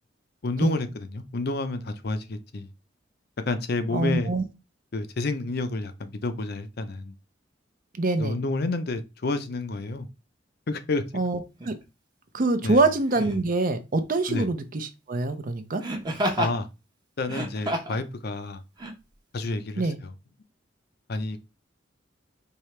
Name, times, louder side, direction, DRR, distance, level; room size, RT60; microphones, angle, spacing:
voice 1, 0.4-2.7 3.5-4.3 4.9-7.1 8.2-10.1 10.7-11.0 12.6-12.8 14.3-14.5 16.4-16.7 17.2-18.6 19.3-20.1 21.1-21.4, left 2 dB, 55° left, 0.6 m, -29 dB
voice 2, 3.9-4.4 8.0-8.4 11.1-11.7 12.3-15.8 19.8-20.0, right 3 dB, 45° right, 0.6 m, -25 dB
Laughter, 11.6-11.8 13.1-13.5 15.8-16.6 17.2-18.0 18.8-18.9, right 1 dB, 25° right, 0.8 m, -29 dB
4.7 x 2.8 x 3.2 m
head